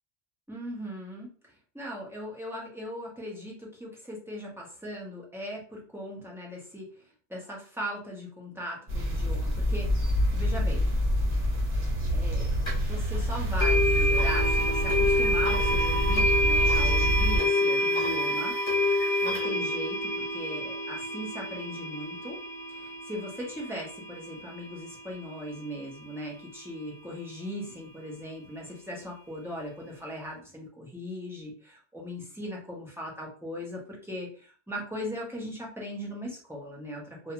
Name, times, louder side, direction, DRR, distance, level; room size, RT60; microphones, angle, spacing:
voice 1, 0.5-1.3 1.7-7.0 7.3-9.9 10.3-10.9 12.1-18.6 19.2-22.4 22.7-37.3, equal, 5° right, -4 dB, 0.6 m, -39 dB
sound 1, 8.9-17.4, equal, 60° right, 1.0 m, -26 dB
sound 2, 12.7-12.8 13.6-24.6, left 1 dB, 30° left, 0.9 m, -27 dB
2.4 x 2.3 x 2.9 m, 0.40 s
omnidirectional pair, 1.0 m